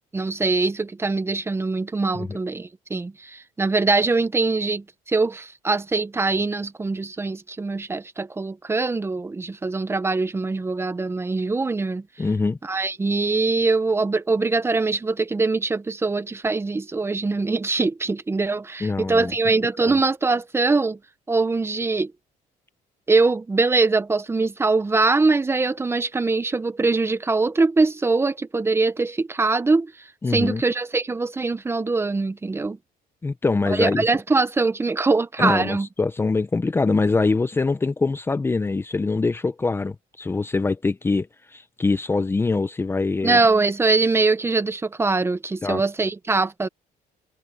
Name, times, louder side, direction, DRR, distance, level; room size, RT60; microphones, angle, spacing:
voice 1, 0.1-12.0 12.6-21.0 21.3-22.1 23.1-29.9 30.3-32.8 33.7-35.9 43.2-46.7, right 3 dB, 15° right, 1.0 m, -22 dB
voice 2, 12.2-12.6 18.8-19.3 19.8-19.9 30.2-30.6 33.2-34.0 35.4-43.4 45.6-45.8, left 3 dB, 15° left, 0.7 m, -24 dB
cardioid pair, 125°, 15 cm